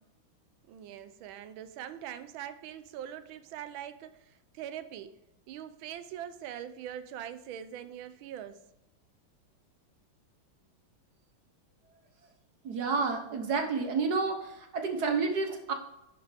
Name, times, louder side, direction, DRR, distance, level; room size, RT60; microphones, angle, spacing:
voice 1, 0.7-5.1 5.5-8.6, right 10 dB, 80° right, 12 dB, 1.5 m, -42 dB
voice 2, 12.6-15.7, right 4 dB, 60° right, 4 dB, 1.5 m, -30 dB
10.5 x 5.6 x 3.4 m, 0.90 s
omnidirectional pair, 2.2 m